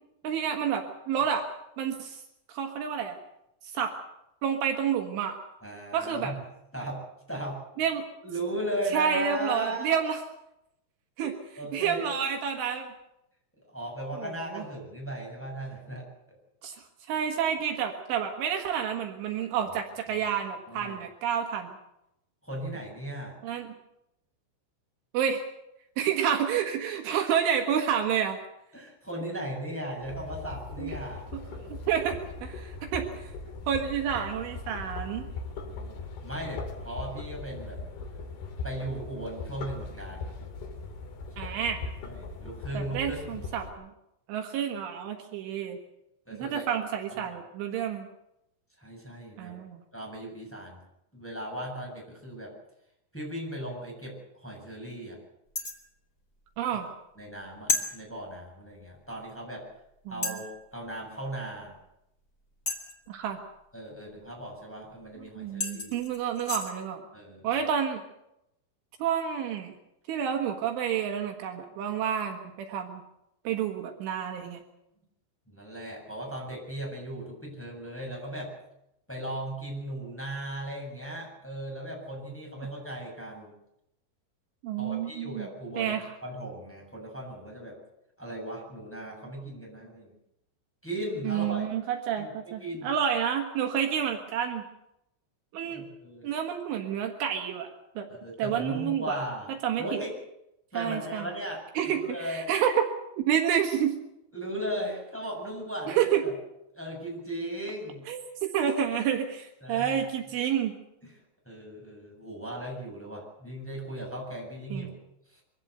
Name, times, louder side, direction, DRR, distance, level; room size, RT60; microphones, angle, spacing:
voice 1, 0.2-1.5 1.8-2.2 2.5-3.2 3.7-4.0 4.4-5.4 5.9-6.3 7.8-8.0 8.9-10.2 11.2-11.3 11.7-12.9 14.1-14.6 16.6-21.7 23.4-23.7 25.1-25.4 26.0-28.4 30.8-30.9 31.3-33.3 33.7-35.3 41.4-41.8 42.7-43.9 44.3-45.8 46.3-48.1 49.4-49.8 56.6-56.9 60.1-60.4 63.1-63.4 65.2-67.0 67.4-68.0 69.0-69.7 70.1-73.0 73.5-74.6 84.6-85.5 85.8-86.0 91.2-94.6 95.5-95.8 96.2-98.1 98.4-99.2 99.6-100.0 100.8-101.3 101.8-102.9 103.2-103.9 105.9-106.2 108.1-110.7 114.7-114.9, right 8 dB, 75° right, 3 dB, 4.0 m, -29 dB
voice 2, 5.6-6.4 6.7-7.6 8.2-10.0 11.2-12.1 13.7-16.1 19.6-19.7 20.1-20.2 20.7-21.0 22.4-23.4 28.7-31.2 35.5-36.0 36.2-37.8 38.6-40.3 41.4-41.6 42.0-43.4 46.3-46.7 47.2-47.4 48.8-49.5 49.9-50.8 51.1-52.5 53.1-55.2 57.2-59.7 60.1-61.8 63.7-65.9 67.1-67.6 75.5-78.5 79.1-83.6 84.8-87.8 88.2-90.1 90.8-91.8 92.2-92.3 92.6-92.9 95.6-96.3 98.1-99.5 99.8-100.2 100.7-102.4 104.3-106.3 106.7-108.1 109.6-110.0 111.0-111.2 111.5-114.9 115.3-115.4, right 1 dB, ahead, -2 dB, 7.1 m, -37 dB
sound 1, 30.0-43.7, left 3 dB, 55° left, 4.2 m, -40 dB
sound 2, 55.6-55.9 57.7-57.9 59.3-59.4 60.2-60.5 62.7-63.1 65.1-65.2 65.6-66.7, left 3 dB, 30° left, 1.6 m, -31 dB
24.0 x 16.5 x 8.0 m, 0.83 s
omnidirectional pair, 5.9 m